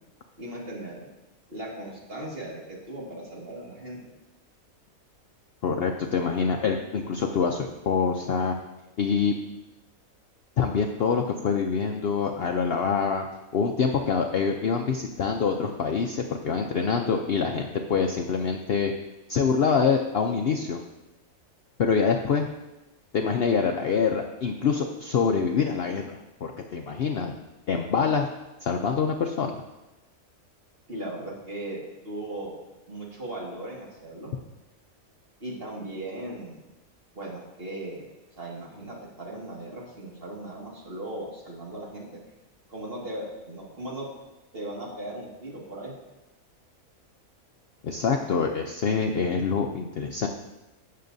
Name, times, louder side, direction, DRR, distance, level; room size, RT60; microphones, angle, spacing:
voice 1, 0.4-1.0 1.5-4.0 30.9-32.6 32.9-34.3 35.4-36.6 37.1-38.1 38.4-42.2 42.7-44.1 44.5-45.9, right 1 dB, 40° right, -4 dB, 2.2 m, -37 dB
voice 2, 5.6-8.6 9.0-9.3 10.6-13.3 13.5-18.9 19.3-20.8 21.8-22.5 23.1-27.3 27.7-28.3 28.6-29.6 47.8-50.3, left 5 dB, 60° left, 3 dB, 0.7 m, -25 dB
16.0 x 6.5 x 2.7 m, 1.0 s
omnidirectional pair, 1.5 m